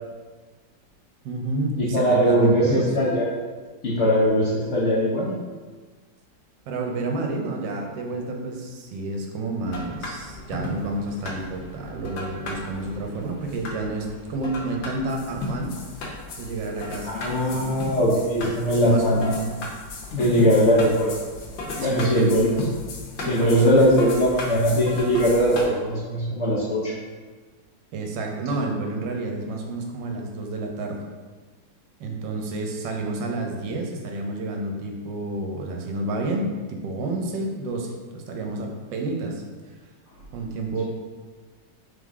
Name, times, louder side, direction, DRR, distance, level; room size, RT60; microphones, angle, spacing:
voice 1, 1.2-2.9 6.7-15.7 16.4-17.1 17.5-17.7 18.7-19.3 21.8-22.3 23.2-23.9 27.9-31.0 32.0-39.4 40.3-40.8, right 2 dB, 80° right, 2 dB, 1.3 m, -30 dB
voice 2, 1.8-3.3 3.8-5.3 17.0-19.4 20.1-21.1 21.8-22.6 23.3-26.9, equal, 60° left, -5 dB, 0.7 m, -20 dB
sound 1, 9.7-25.7, left 2 dB, 80° left, 1.5 m, -35 dB
3.8 x 3.4 x 3.5 m, 1.4 s
omnidirectional pair, 2.0 m